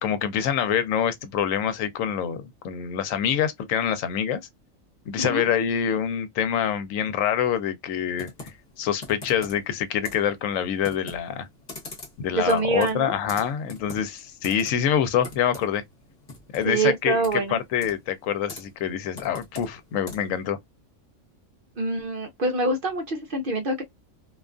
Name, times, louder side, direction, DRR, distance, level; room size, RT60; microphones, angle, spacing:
voice 1, 0.0-4.4 5.1-8.3 8.8-11.5 12.2-15.8 16.5-20.6, left 9 dB, 75° left, 0.9 m, -26 dB
Computer keyboard, 8.2-20.4, left 3 dB, 40° left, 0.9 m, -44 dB
voice 2, 12.3-13.1 16.6-17.6 21.8-23.8, right 2 dB, 55° right, 0.6 m, -25 dB
2.4 x 2.3 x 2.3 m
omnidirectional pair, 1.4 m